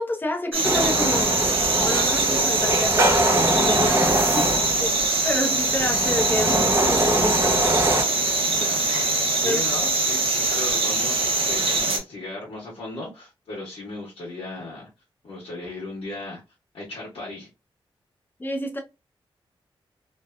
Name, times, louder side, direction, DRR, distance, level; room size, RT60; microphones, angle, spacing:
voice 1, 0.0-1.4 1.8-4.5 4.8-7.6 9.4-9.6 18.4-18.8, left 1 dB, 20° left, 0.7 m, -29 dB
sound 1, 0.5-12.0, right 2 dB, 75° right, 0.7 m, -23 dB
sound 2, 0.6-8.0, right 1 dB, 30° right, 0.6 m, -23 dB
voice 2, 8.5-8.9 9.3-14.9 15.2-16.4 16.7-17.5, left 2 dB, 85° left, 1.1 m, -36 dB
2.9 x 2.2 x 2.3 m
wide cardioid pair, 95°, 9 cm